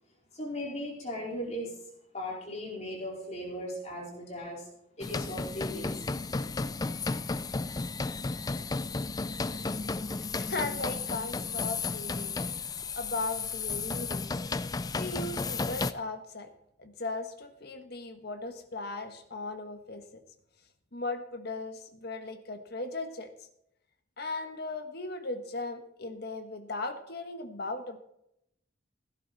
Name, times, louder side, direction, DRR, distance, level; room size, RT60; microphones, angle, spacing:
voice 1, 0.3-1.7 2.1-4.7 5.0-6.1, left 1 dB, 35° left, -3 dB, 4.3 m, -37 dB
sound 1, 5.0-15.9, left 4 dB, 20° left, 0.4 m, -33 dB
voice 2, 10.2-12.4 13.0-14.2 14.9-16.5 16.8-20.0 20.9-23.3 24.2-28.0, left 2 dB, 55° left, 6 dB, 1.5 m, -37 dB
16.5 x 10.5 x 4.1 m, 0.76 s
head